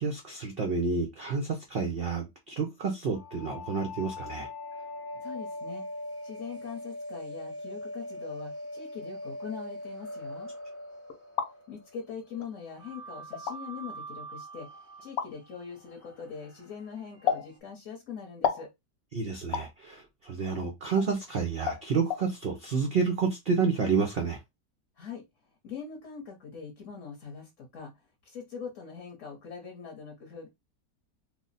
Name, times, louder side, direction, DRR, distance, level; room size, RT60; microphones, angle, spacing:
voice 1, 0.0-4.5 19.1-24.4, right 5 dB, 80° right, 0.5 m, -29 dB
sound 1, 3.1-11.9 12.8-17.6, left 1 dB, 10° left, 0.7 m, -42 dB
voice 2, 5.2-5.8 6.2-10.5 11.7-18.7 25.0-25.2 25.6-30.5, left 6 dB, 55° left, 1.0 m, -42 dB
sound 2, 11.1-11.5 12.4-12.5 13.3-13.6 15.2-15.3 17.3-17.5 18.4-18.7 19.5-19.7 21.0-21.1 21.7-21.8 22.1-22.2, left 8 dB, 85° left, 1.2 m, -29 dB
3.2 x 2.0 x 3.9 m
omnidirectional pair, 1.8 m